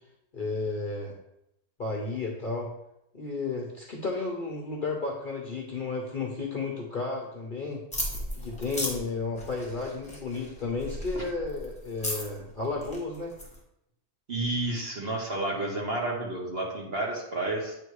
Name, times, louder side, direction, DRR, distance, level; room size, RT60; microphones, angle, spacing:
voice 1, 0.3-1.2 1.8-2.7 3.1-7.8 8.4-13.3, left 3 dB, 40° left, 0 dB, 0.9 m, -33 dB
sound 1, 7.9-13.6, equal, 5° left, 1.3 m, -36 dB
voice 2, 14.3-17.8, right 2 dB, 45° right, -1 dB, 1.3 m, -31 dB
8.4 x 3.0 x 4.7 m, 0.82 s
omnidirectional pair, 1.6 m